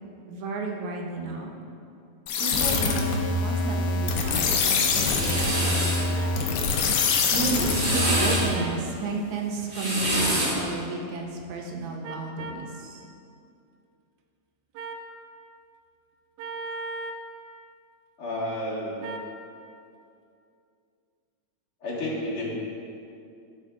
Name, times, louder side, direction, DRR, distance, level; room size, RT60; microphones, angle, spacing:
voice 1, 0.2-1.6 2.4-3.1 3.4-6.5 7.3-13.0, right 3 dB, 75° right, 1 dB, 2.1 m, -32 dB
sound 1, 2.3-8.6, left 4 dB, 85° left, 1.3 m, -25 dB
sound 2, 4.7-6.0 7.4-8.5 9.6-10.7, right 1 dB, 30° right, 2.0 m, -26 dB
sound 3, 6.1-6.3 7.6-7.7 8.5-8.8 10.1-10.4 12.0-12.6 14.7-15.1 16.4-17.2 19.0-19.3, right 3 dB, 90° right, 2.1 m, -37 dB
voice 2, 18.2-18.9 21.8-22.5, left 1 dB, 45° left, -8 dB, 2.5 m, -30 dB
13.0 x 4.5 x 3.6 m, 2.5 s
omnidirectional pair, 3.6 m